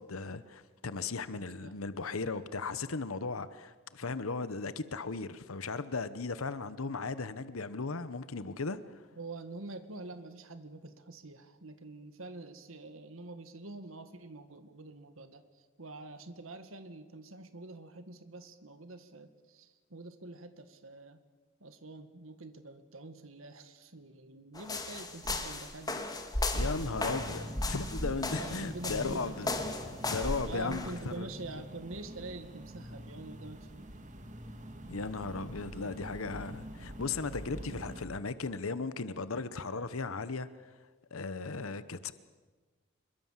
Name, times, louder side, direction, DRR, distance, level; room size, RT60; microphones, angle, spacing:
voice 1, 0.0-9.0 26.5-29.6 30.0-31.3 34.9-40.5 41.1-42.1, left 4 dB, 85° left, 1.0 m, -36 dB
voice 2, 9.2-15.4 15.8-21.2 21.6-26.2 28.2-29.5 30.4-33.9, right 2 dB, 70° right, 1.9 m, -46 dB
sound 1, 24.6-31.0, left 2 dB, 20° left, 2.4 m, -35 dB
sound 2, 26.6-38.1, right 1 dB, 35° right, 2.6 m, -45 dB
27.0 x 22.5 x 7.5 m
head